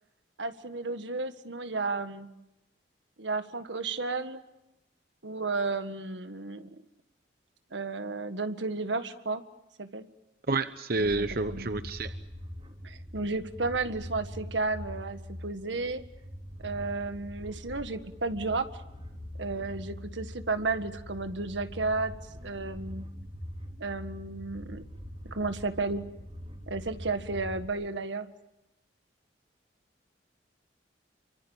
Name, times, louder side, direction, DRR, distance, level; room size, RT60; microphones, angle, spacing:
voice 1, 0.4-2.3 3.2-4.4 5.2-6.7 7.7-9.4 9.8-10.1 10.9-11.8 12.8-16.0 16.6-18.7 19.4-22.1 22.4-23.1 23.8-24.8 25.2-26.0 26.7-28.3, right 3 dB, 85° right, 9 dB, 1.7 m, -33 dB
voice 2, 10.5-12.1, right 3 dB, 55° right, 10 dB, 1.0 m, -29 dB
sound 1, 10.9-27.6, equal, 35° right, 4.2 m, -43 dB
29.0 x 25.0 x 7.2 m, 0.90 s
head